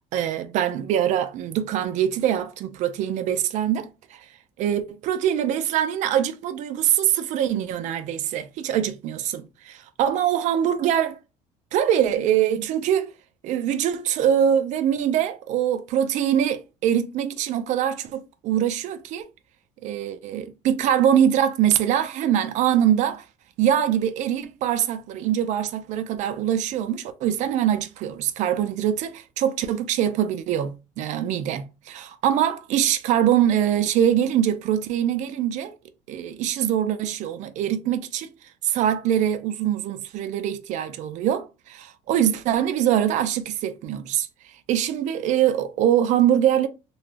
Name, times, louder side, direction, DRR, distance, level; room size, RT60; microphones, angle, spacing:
voice 1, 0.0-4.3 4.6-11.2 11.7-13.1 13.4-19.3 19.8-23.2 23.6-35.7 36.1-38.3 38.6-44.3 44.7-46.7, right 10 dB, 60° right, 0.5 m, -23 dB
3.1 x 2.3 x 2.5 m
cardioid pair, 130°, 14 cm